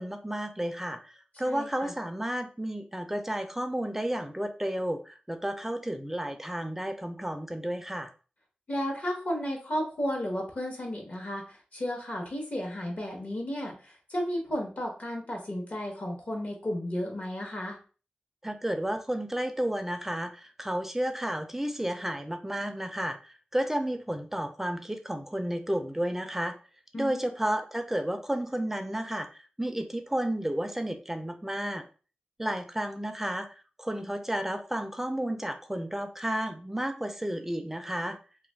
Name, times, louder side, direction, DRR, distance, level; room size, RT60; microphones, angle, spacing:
voice 1, 0.0-8.1 18.4-26.6 27.0-29.3 29.6-31.8 32.4-38.2, right 1 dB, 10° right, 7 dB, 0.4 m, -32 dB
voice 2, 1.4-1.9 8.7-17.8 26.9-27.2, equal, 55° left, 1 dB, 0.9 m, -33 dB
2.3 x 2.2 x 3.3 m, 0.36 s
wide cardioid pair, 65°, 3 cm